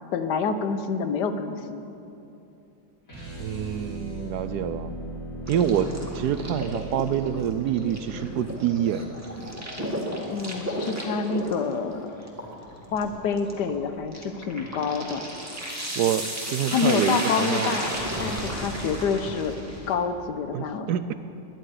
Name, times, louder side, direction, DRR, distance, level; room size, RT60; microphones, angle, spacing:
voice 1, 0.1-1.9 10.3-12.3 12.9-15.3 16.7-19.6 19.9-20.9, left 5 dB, 65° left, 9 dB, 1.4 m, -27 dB
sound 1, 3.0-9.2, right 1 dB, 45° left, 5.1 m, -38 dB
voice 2, 3.4-4.9 5.5-9.1 16.0-17.8 20.5-21.1, right 9 dB, 75° right, 12 dB, 1.0 m, -27 dB
sound 2, 5.5-19.9, equal, 10° right, 1.7 m, -34 dB
21.0 x 11.0 x 4.9 m, 2.7 s
omnidirectional pair, 2.0 m